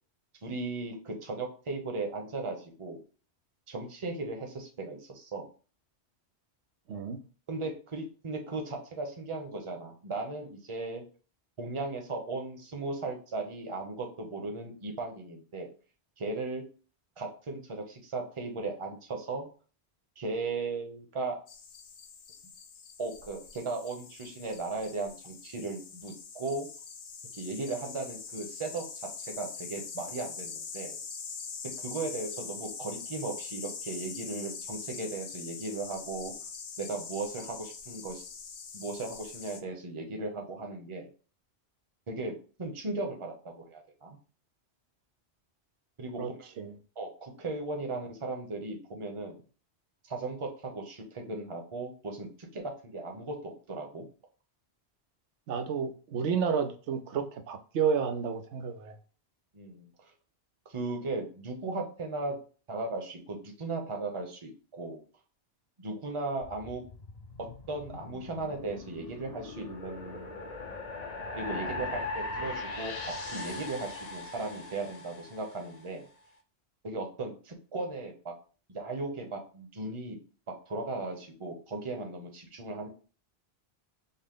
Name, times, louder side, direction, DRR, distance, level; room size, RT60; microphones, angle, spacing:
voice 1, 0.4-3.0 3.7-5.5 7.5-11.0 11.6-15.7 16.2-16.6 17.2-19.5 20.2-21.4 23.0-26.7 27.3-31.0 31.8-36.3 36.8-38.3 38.7-41.1 42.1-42.3 42.6-44.2 46.0-46.5 47.0-49.4 50.0-54.1 59.5-60.1 60.7-62.4 62.7-65.0 65.8-66.8 67.7-70.3 71.3-76.1 76.8-78.3 78.7-80.2 80.7-82.9, right 3 dB, 30° right, 0.8 m, -37 dB
sound 1, 21.5-39.6, left 5 dB, 80° left, 1.0 m, -43 dB
voice 2, 55.5-58.9, right 6 dB, 90° right, 0.9 m, -31 dB
sound 2, 66.4-75.8, left 2 dB, 45° left, 0.6 m, -40 dB
5.6 x 2.0 x 3.6 m
omnidirectional pair, 1.1 m